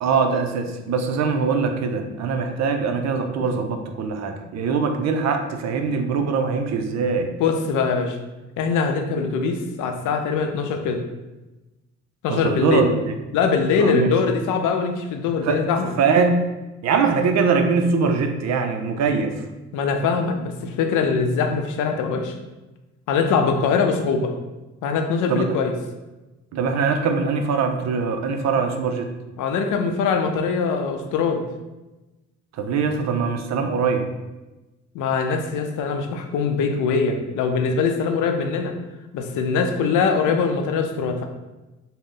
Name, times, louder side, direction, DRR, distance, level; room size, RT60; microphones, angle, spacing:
voice 1, 0.0-7.3 12.3-13.1 13.8-14.1 15.4-15.6 16.0-16.5 16.8-19.3 25.3-25.4 26.5-29.1 32.6-34.1, right 5 dB, 60° right, 6 dB, 0.5 m, -22 dB
voice 2, 7.4-8.2 8.6-11.0 12.2-12.8 13.3-15.9 19.7-22.3 23.1-24.3 24.8-25.7 29.4-31.4 34.9-38.7 39.1-41.3, left 5 dB, 85° left, 5 dB, 0.5 m, -22 dB
3.7 x 2.1 x 3.7 m, 1.1 s
cardioid pair, 90°, 30 cm